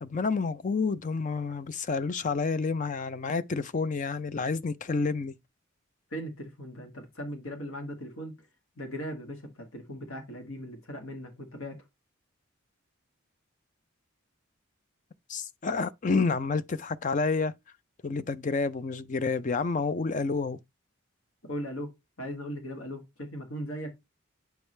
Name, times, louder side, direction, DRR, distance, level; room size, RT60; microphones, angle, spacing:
voice 1, 0.0-5.3 15.3-17.5 18.0-20.6, left 4 dB, 35° left, 0.4 m, -29 dB
voice 2, 6.1-8.3 8.8-11.8 21.4-23.9, equal, 75° left, 1.7 m, -38 dB
8.0 x 4.8 x 3.2 m
head